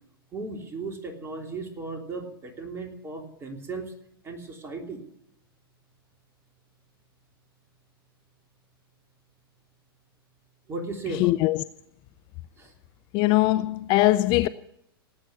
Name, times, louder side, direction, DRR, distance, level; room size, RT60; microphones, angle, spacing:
voice 1, 0.3-3.9 4.2-5.0 10.7-11.4 12.6-12.7, right 3 dB, 20° right, 3.4 m, -36 dB
voice 2, 11.2-11.6 13.1-14.5, left 18 dB, 40° left, 0.5 m, -21 dB
18.5 x 9.0 x 8.3 m
figure-of-eight pair, 95°, 13 cm